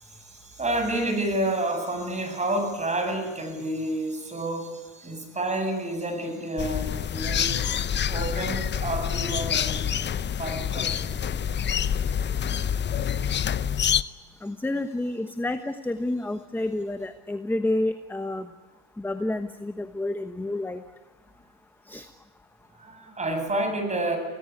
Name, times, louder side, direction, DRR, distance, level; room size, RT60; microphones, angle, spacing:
voice 1, 0.0-7.6 8.1-9.8 10.4-11.2 22.8-24.2, right 1 dB, 20° right, 5 dB, 7.8 m, -29 dB
sound 1, 6.6-14.0, left 8 dB, 30° left, 0.8 m, -27 dB
voice 2, 14.4-18.5 19.0-20.8 21.9-22.1, left 1 dB, 5° left, 9 dB, 1.1 m, -29 dB
25.0 x 17.5 x 9.7 m, 1.2 s
hypercardioid pair, 85°, 38 cm